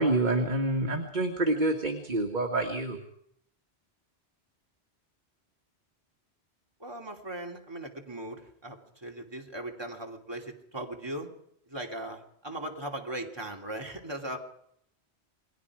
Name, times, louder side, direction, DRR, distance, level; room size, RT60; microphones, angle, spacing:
voice 1, 0.0-3.0, right 2 dB, 45° right, 3 dB, 2.0 m, -27 dB
voice 2, 6.8-11.3 11.7-14.4, right 1 dB, 25° right, 1 dB, 3.0 m, -38 dB
28.5 x 22.0 x 4.9 m, 0.70 s
omnidirectional pair, 1.1 m